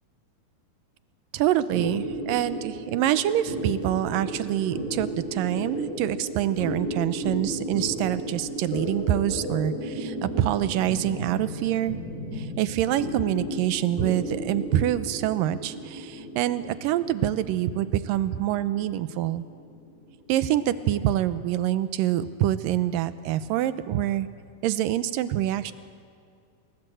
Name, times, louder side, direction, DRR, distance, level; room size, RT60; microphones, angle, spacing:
voice 1, 1.3-12.0 12.3-19.5 20.3-24.3 24.6-25.7, right 12 dB, 90° right, 13 dB, 2.5 m, -26 dB
sound 1, 1.7-20.5, equal, 65° left, 5.5 m, -34 dB
28.0 x 20.0 x 7.8 m, 2.2 s
omnidirectional pair, 3.8 m